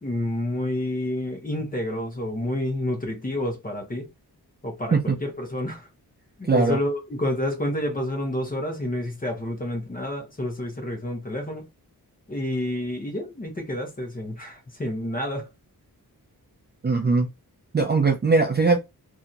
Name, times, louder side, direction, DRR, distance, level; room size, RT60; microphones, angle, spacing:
voice 1, 0.0-4.1 4.6-5.9 6.4-11.7 12.3-15.5, left 1 dB, 20° left, 0.9 m, -29 dB
voice 2, 6.5-6.8 16.8-17.3 17.7-18.8, right 4 dB, 30° right, 0.4 m, -20 dB
2.8 x 2.7 x 2.3 m
wide cardioid pair, 125°, 38 cm